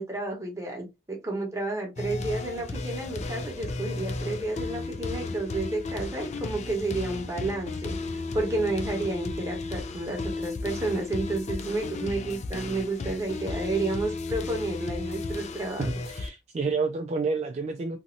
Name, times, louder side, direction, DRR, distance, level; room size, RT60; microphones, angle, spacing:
voice 1, 0.0-15.9, right 2 dB, 20° right, 1.0 m, -31 dB
sound 1, 2.0-16.3, left 3 dB, 40° left, 0.4 m, -34 dB
voice 2, 15.8-18.0, right 4 dB, 40° right, 0.3 m, -29 dB
2.9 x 2.6 x 2.6 m
head